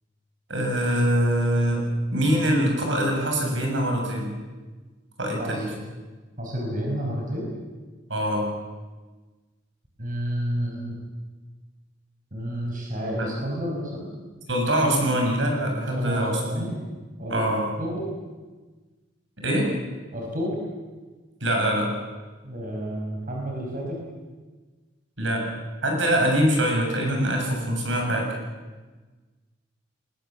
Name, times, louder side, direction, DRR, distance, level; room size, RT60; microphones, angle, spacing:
voice 1, 0.5-1.8 2.1-4.4 5.2-5.7 8.1-8.5 13.2-13.3 14.5-16.7 17.3-17.7 19.4-19.7 21.4-21.9 25.2-25.4 25.8-28.3, equal, 70° right, 1 dB, 7.1 m, -23 dB
voice 2, 6.4-7.5 10.0-11.0 12.3-14.1 15.9-16.8 17.2-17.4 17.8-18.1 20.1-20.6 22.4-24.0, equal, 45° right, -1 dB, 5.4 m, -30 dB
25.0 x 21.0 x 7.5 m, 1.3 s
head